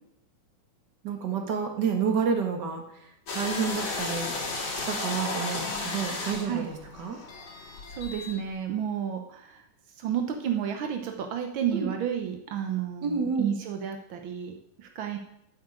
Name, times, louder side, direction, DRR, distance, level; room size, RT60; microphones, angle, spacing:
voice 1, 1.0-2.8 3.3-4.3 4.9-7.2 11.7-11.9 13.0-13.5, right 6 dB, 40° right, 4 dB, 1.9 m, -29 dB
sound 1, 3.3-8.4, left 3 dB, 55° left, 3.6 m, -34 dB
voice 2, 7.9-9.6 10.0-15.2, right 9 dB, 70° right, 5 dB, 1.2 m, -31 dB
9.4 x 7.7 x 8.7 m, 0.78 s
omnidirectional pair, 3.5 m